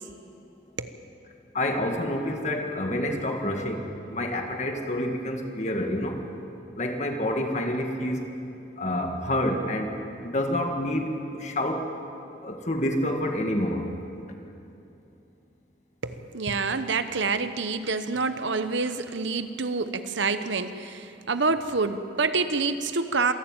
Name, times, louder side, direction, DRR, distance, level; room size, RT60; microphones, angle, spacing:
voice 1, 1.5-6.2 6.8-8.3 8.8-9.9 10.2-11.9 12.4-13.9, left 1 dB, 35° left, 3 dB, 1.9 m, -28 dB
voice 2, 16.0-23.3, right 4 dB, 70° right, 11 dB, 0.9 m, -27 dB
26.5 x 11.5 x 9.0 m, 2.8 s
head